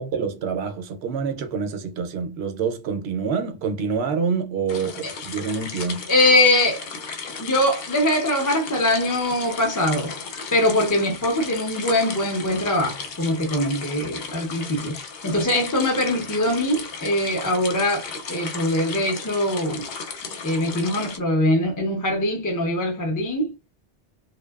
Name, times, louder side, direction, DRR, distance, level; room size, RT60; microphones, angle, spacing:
voice 1, 0.0-6.1, right 5 dB, 70° right, 0.8 m, -27 dB
sound 1, 4.7-21.2, left 5 dB, 65° left, 0.8 m, -35 dB
voice 2, 6.1-6.9 7.4-10.1 10.5-15.0 15.2-19.9 20.4-23.5, left 1 dB, 25° left, 0.4 m, -22 dB
2.6 x 2.1 x 2.3 m
omnidirectional pair, 1.1 m